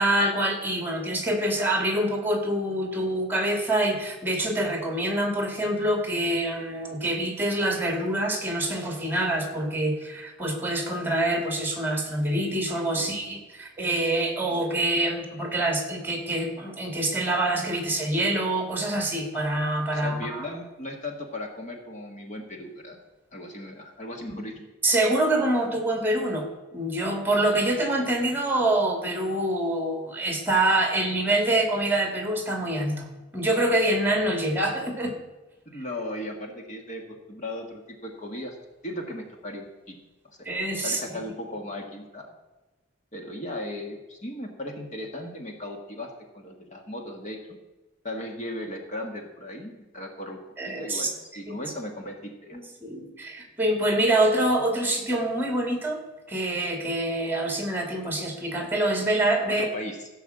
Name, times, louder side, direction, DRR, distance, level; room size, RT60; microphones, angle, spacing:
voice 1, 0.0-20.5 24.3-24.4 24.8-26.5 26.7-35.1 40.5-41.2 50.6-51.1 51.5-51.6 52.5-56.0 56.3-59.7, right 1 dB, 10° right, 2 dB, 2.2 m, -26 dB
voice 2, 12.9-13.4 19.9-23.0 23.3-24.7 35.6-37.0 37.3-38.6 38.8-40.0 40.2-40.4 40.8-42.3 43.1-47.6 48.0-50.4 50.6-52.6 59.5-60.1, left 1 dB, 40° left, 2 dB, 1.6 m, -37 dB
16.0 x 5.6 x 7.8 m, 1.1 s
head